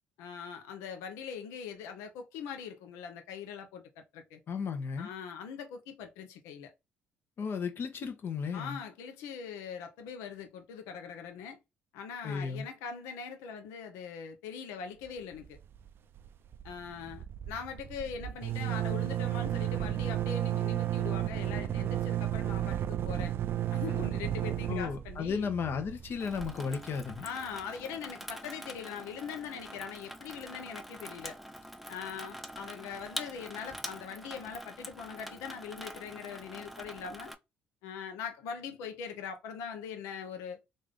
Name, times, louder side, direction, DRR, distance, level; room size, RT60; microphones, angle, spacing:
voice 1, 0.2-4.4 5.0-6.7 8.5-11.6 11.9-15.6 16.6-23.3 23.7-25.5 27.2-31.4 31.9-37.3 37.8-40.6, left 7 dB, 80° left, 0.7 m, -42 dB
voice 2, 4.5-5.1 7.4-8.8 12.2-12.7 24.7-27.3, left 6 dB, 55° left, 0.9 m, -34 dB
sound 1, 15.3-15.9 16.2-16.3 16.5-27.2, right 12 dB, 55° right, 0.4 m, -33 dB
Water tap faucet / Sink (filling or washing), 26.2-37.3, equal, ahead, 0.6 m, -45 dB
3.2 x 2.6 x 3.6 m
supercardioid pair, 60°, 5 cm